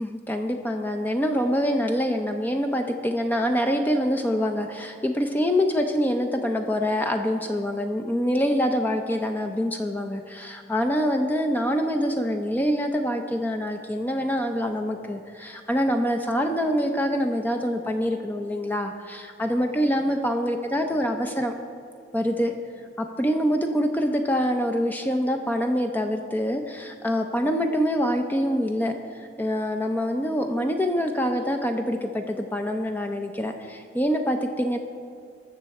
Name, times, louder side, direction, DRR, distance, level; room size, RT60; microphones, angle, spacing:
voice 1, 0.0-21.5 22.1-22.5 23.0-28.9 29.2-34.8, equal, 10° left, 4 dB, 0.6 m, -25 dB
20.0 x 6.7 x 4.2 m, 2.3 s
head